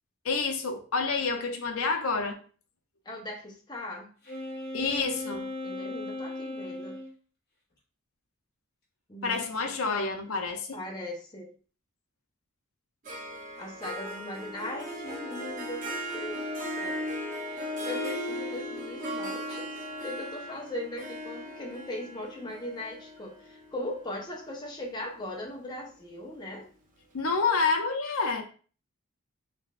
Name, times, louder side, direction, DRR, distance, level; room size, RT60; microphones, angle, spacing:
voice 1, 0.2-2.4 4.7-5.5 9.2-10.8 27.1-28.4, left 4 dB, 75° left, 6 dB, 0.6 m, -28 dB
voice 2, 3.0-4.1 5.6-7.0 9.1-9.9 10.7-11.5 13.6-16.4 16.8-17.1 17.5-26.7, left 1 dB, 20° left, 0 dB, 0.7 m, -39 dB
Wind instrument woodwind instrument, 4.2-7.1, left 2 dB, 45° left, 1.5 m, -37 dB
Harp, 13.0-24.5, equal, 35° right, 0.7 m, -37 dB
3.7 x 3.3 x 2.4 m, 0.40 s
head